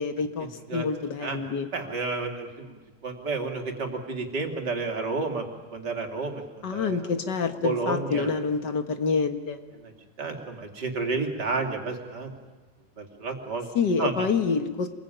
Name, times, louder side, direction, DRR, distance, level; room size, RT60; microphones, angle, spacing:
voice 1, 0.0-1.7 6.6-9.6 13.7-14.9, left 5 dB, 70° left, 8 dB, 2.2 m, -27 dB
voice 2, 1.7-5.4 5.7-7.1 7.6-8.3 9.8-9.9 10.2-12.3 13.0-13.7 14.0-14.3, right 3 dB, 70° right, 3 dB, 3.4 m, -31 dB
27.5 x 21.5 x 9.2 m, 1.3 s
omnidirectional pair, 1.9 m